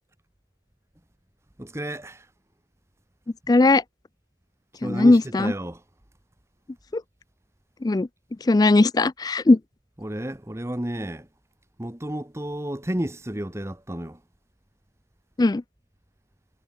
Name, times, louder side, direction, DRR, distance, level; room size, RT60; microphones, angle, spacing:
voice 1, 1.6-2.3 4.8-5.8 10.0-11.3 11.8-14.2, right 1 dB, 15° right, 1.0 m, -31 dB
voice 2, 3.5-3.8 4.8-5.5 6.9-7.0 7.8-8.1 8.4-9.6 15.4-15.6, left 2 dB, 20° left, 0.3 m, -18 dB
head